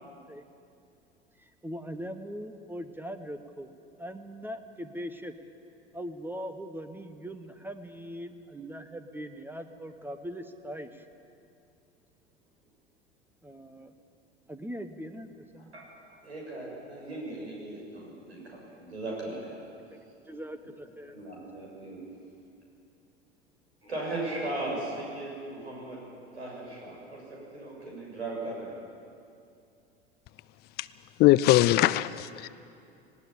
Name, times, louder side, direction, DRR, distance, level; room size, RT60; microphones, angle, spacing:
voice 1, 1.4-5.3 5.9-11.1 13.4-13.9 14.5-15.7 20.2-21.2, equal, 5° right, 9 dB, 1.0 m, -41 dB
voice 2, 16.2-19.6 21.1-22.1 23.8-26.0 26.3-28.7, right 2 dB, 75° right, -2 dB, 7.0 m, -37 dB
voice 3, 31.2-32.5, left 16 dB, 30° left, 17 dB, 0.4 m, -21 dB
19.0 x 18.0 x 8.6 m, 2.6 s
figure-of-eight pair, 80°, 33 cm